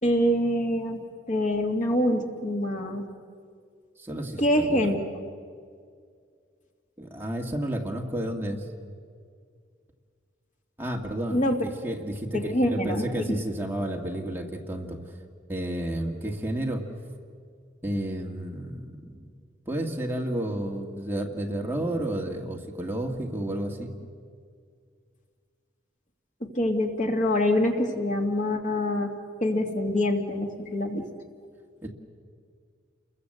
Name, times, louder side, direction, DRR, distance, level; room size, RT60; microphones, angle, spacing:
voice 1, 0.0-1.0 1.3-3.1 4.4-5.0 11.3-11.6 12.3-13.0 26.4-29.1 29.4-31.0, left 1 dB, 45° left, 3 dB, 2.3 m, -25 dB
voice 2, 4.0-5.0 7.0-8.7 10.8-15.0 15.5-16.9 17.8-19.3 19.7-23.9 31.8-31.9, right 1 dB, 10° right, 0 dB, 2.0 m, -31 dB
29.5 x 22.0 x 7.9 m, 2.2 s
head